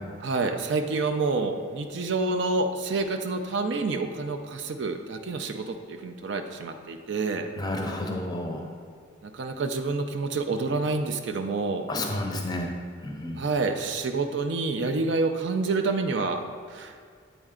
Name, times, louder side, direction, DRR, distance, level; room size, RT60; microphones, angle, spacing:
voice 1, 0.2-7.5 9.2-11.9 13.4-16.4 16.7-17.0, right 3 dB, 55° right, 6 dB, 0.4 m, -28 dB
voice 2, 7.6-8.6 11.9-12.7 13.0-13.4, left 1 dB, 20° left, 2 dB, 0.6 m, -30 dB
8.0 x 4.4 x 3.7 m, 2.1 s
head